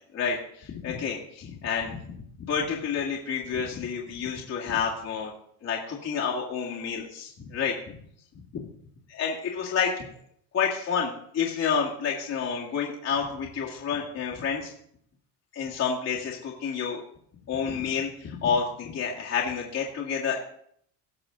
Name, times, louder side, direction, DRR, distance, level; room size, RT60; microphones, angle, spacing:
voice 1, 0.1-5.3 5.6-8.0 8.5-8.6 9.1-10.1 10.5-14.7 15.5-17.0 17.5-20.4, left 6 dB, 35° left, -3 dB, 2.0 m, -29 dB
18.0 x 6.3 x 3.8 m, 0.66 s
cardioid pair, 145°, 42 cm